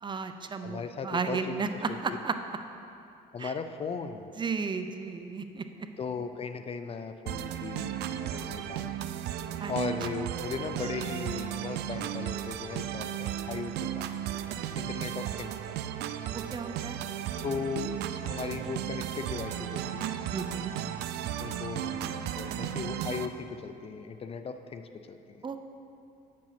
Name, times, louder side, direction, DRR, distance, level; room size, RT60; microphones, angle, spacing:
voice 1, 0.0-2.3 3.4-3.5 4.4-5.9 9.6-9.7 16.3-17.0 20.3-20.7 25.4-25.6, right 5 dB, 30° right, 8 dB, 0.5 m, -33 dB
voice 2, 0.6-2.2 3.3-4.3 6.0-8.9 9.7-14.1 14.7-15.8 17.4-20.1 21.4-25.4, left 5 dB, 35° left, 9 dB, 0.5 m, -37 dB
sound 1, 7.3-23.3, right 10 dB, 75° right, 0.5 m, -35 dB
8.8 x 7.5 x 5.8 m, 2.6 s
cardioid pair, 110°, 17 cm